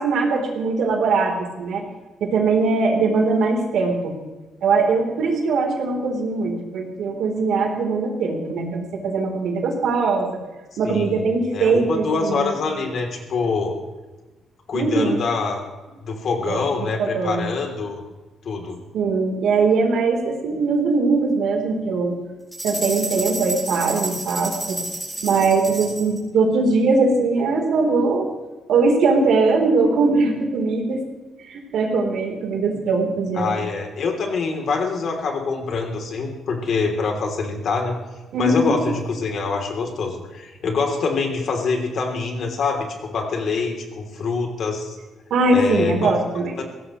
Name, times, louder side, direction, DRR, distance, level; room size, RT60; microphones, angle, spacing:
voice 1, 0.0-1.8 2.2-4.1 4.6-10.4 10.8-12.5 14.7-15.2 16.5-16.6 17.0-17.5 18.9-22.2 22.6-24.8 25.2-28.3 28.7-31.0 31.5-33.6 38.3-38.8 45.3-46.5, right 3 dB, 70° right, 2 dB, 3.6 m, -21 dB
voice 2, 10.8-11.2 11.5-13.8 14.7-15.6 16.0-18.0 18.4-18.8 33.4-38.0 38.4-45.0 45.5-46.1 46.6-46.7, left 4 dB, 50° left, 2 dB, 3.2 m, -25 dB
sound 1, 22.5-26.2, right 1 dB, 5° right, 4.6 m, -30 dB
21.0 x 17.0 x 3.2 m, 1.2 s
cardioid pair, 155°, 0 cm